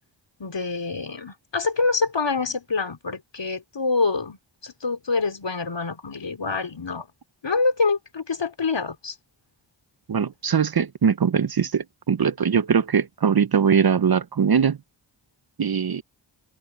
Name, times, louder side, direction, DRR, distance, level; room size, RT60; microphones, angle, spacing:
voice 1, 0.4-4.4 4.6-7.1 7.4-9.2, left 4 dB, 65° left, 3.7 m, -26 dB
voice 2, 10.1-14.8 15.6-16.0, right 7 dB, 50° right, 0.8 m, -21 dB
open air
cardioid pair, 40°, 47 cm